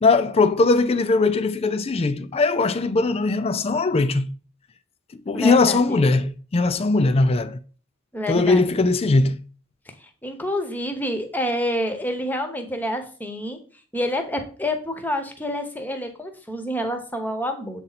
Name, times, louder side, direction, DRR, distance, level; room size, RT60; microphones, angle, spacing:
voice 1, 0.0-4.3 5.3-7.6 8.3-9.4, left 3 dB, 30° left, 0.4 m, -20 dB
voice 2, 5.3-6.0 8.1-8.9 10.2-13.6 13.9-17.8, equal, 10° left, 1.0 m, -28 dB
7.7 x 4.2 x 4.1 m
head